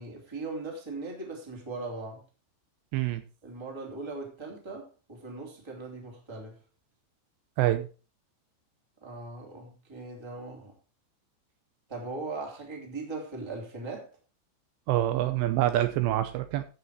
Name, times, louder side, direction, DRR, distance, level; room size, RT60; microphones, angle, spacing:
voice 1, 0.0-2.2 3.4-6.6 9.0-10.7 11.9-14.1, right 3 dB, 10° right, 0 dB, 1.9 m, -39 dB
voice 2, 2.9-3.2 7.6-7.9 14.9-16.6, right 14 dB, 80° right, 9 dB, 2.7 m, -26 dB
14.5 x 5.7 x 4.6 m, 0.34 s
omnidirectional pair, 5.3 m